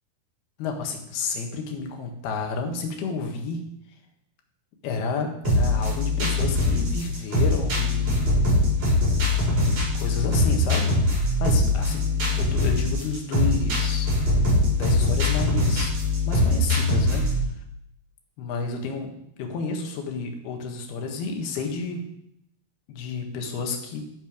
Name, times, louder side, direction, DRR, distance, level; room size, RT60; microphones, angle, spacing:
voice 1, 0.6-3.6 4.8-8.4 9.7-14.1 14.7-15.9 16.3-17.3 18.4-22.0 22.9-24.1, left 4 dB, 70° left, 3 dB, 3.5 m, -31 dB
sound 1, 5.4-17.5, left 2 dB, 40° right, 6.4 m, -22 dB
14.0 x 8.0 x 5.1 m, 0.75 s
omnidirectional pair, 4.8 m